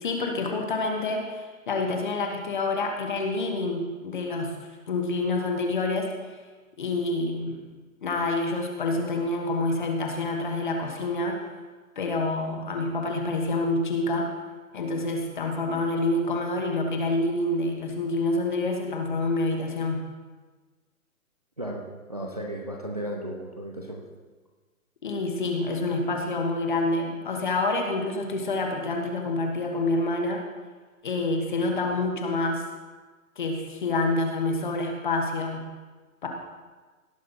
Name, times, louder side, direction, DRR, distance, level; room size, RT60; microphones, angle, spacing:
voice 1, 0.0-4.6 4.9-6.4 6.8-7.7 8.0-11.4 11.9-14.3 14.7-20.1 25.0-30.4 31.0-32.6 33.4-35.6 36.2-36.3, left 2 dB, 35° left, 2 dB, 1.4 m, -27 dB
voice 2, 21.6-24.1, right 1 dB, 30° right, 0 dB, 0.5 m, -35 dB
17.0 x 6.5 x 4.0 m, 1.3 s
hypercardioid pair, 180°, 43 cm